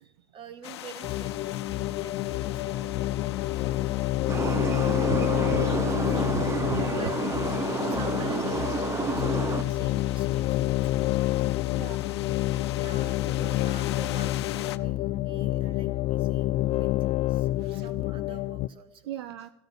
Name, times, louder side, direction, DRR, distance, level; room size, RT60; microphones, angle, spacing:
voice 1, 0.0-5.2 5.6-6.1 6.9-7.2 7.6-11.1 12.8-16.9 17.3-19.2, right 5 dB, 40° right, 9 dB, 2.4 m, -48 dB
sound 1, 0.6-14.8, left 13 dB, 75° left, 0.9 m, -40 dB
sound 2, 1.0-18.7, left 15 dB, 45° left, 0.5 m, -28 dB
sound 3, 4.3-9.6, right 5 dB, 20° right, 0.8 m, -30 dB
voice 2, 5.1-7.0 7.6-7.9 11.8-12.1 17.6-17.9 19.1-19.5, right 11 dB, 70° right, 12 dB, 0.9 m, -37 dB
14.5 x 13.0 x 7.1 m, 0.76 s
hypercardioid pair, 95°, 14 cm